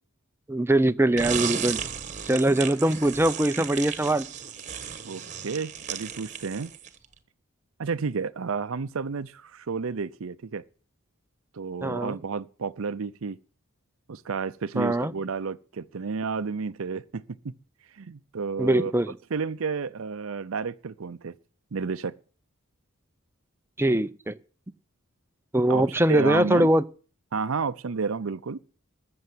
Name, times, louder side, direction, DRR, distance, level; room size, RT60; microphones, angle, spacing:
voice 1, 0.5-1.8 2.3-4.3 11.8-12.2 14.8-15.1 18.6-19.2 23.8-24.3 25.5-26.8, right 1 dB, 10° right, 0.5 m, -22 dB
sound 1, 1.2-7.0, right 8 dB, 35° right, 1.3 m, -34 dB
voice 2, 5.0-6.7 7.8-10.6 11.5-13.4 14.1-17.5 18.0-18.9 19.3-21.4 21.7-22.2 25.7-25.8 26.1-26.7 27.3-28.6, right 5 dB, 70° right, 0.6 m, -31 dB
14.0 x 7.8 x 7.8 m
head